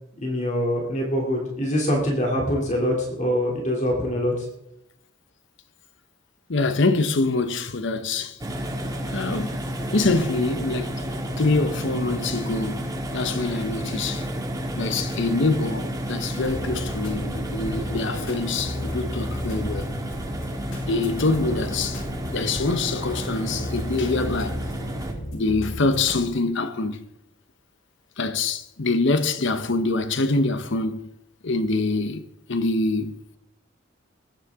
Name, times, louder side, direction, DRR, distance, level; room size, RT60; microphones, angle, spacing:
voice 1, 0.2-4.4, equal, 40° left, 2.9 m, -24 dB
voice 2, 6.5-8.4 9.1-9.6 9.9-10.9 11.4-12.9 13.1-14.3 14.8-19.9 20.9-22.0 22.3-24.6 25.3-27.0 28.2-31.0 31.4-32.2 32.5-33.4, left 3 dB, 65° left, 1.0 m, -25 dB
sound 1, 8.4-25.1, equal, 20° right, 1.7 m, -31 dB
sound 2, 16.4-26.2, left 1 dB, 85° left, 3.8 m, -34 dB
20.0 x 9.8 x 3.7 m
head